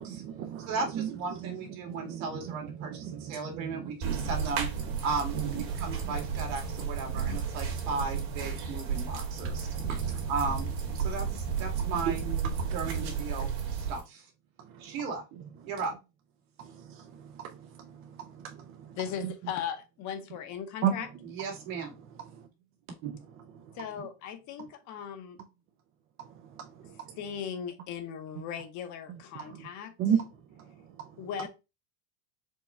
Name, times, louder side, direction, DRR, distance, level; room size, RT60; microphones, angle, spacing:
voice 1, 0.0-4.3 4.8-5.0 5.3-6.5 6.8-7.1 8.6-8.7 9.4-9.9 11.0-11.4 11.8-13.1 13.4-13.5 14.6-15.0 16.6-19.0 19.2-19.3 20.8-20.9 22.2-22.5 23.0-23.8 26.2-27.2 29.1-29.7 30.0-30.2 30.5-31.2, right 9 dB, 35° right, 0.4 m, -36 dB
voice 2, 0.7-4.7 5.0-5.4 5.8-10.7 10.9-12.2 12.7-14.3 14.8-15.2 15.6-15.9 21.4-22.0, right 4 dB, 75° right, 1.9 m, -36 dB
sound 1, 4.0-14.0, right 6 dB, 55° right, 1.7 m, -33 dB
voice 3, 19.0-21.1 23.7-25.4 27.2-29.9 31.2-31.5, left 8 dB, 45° left, 0.8 m, -38 dB
4.6 x 2.2 x 4.2 m
supercardioid pair, 145°, 40 cm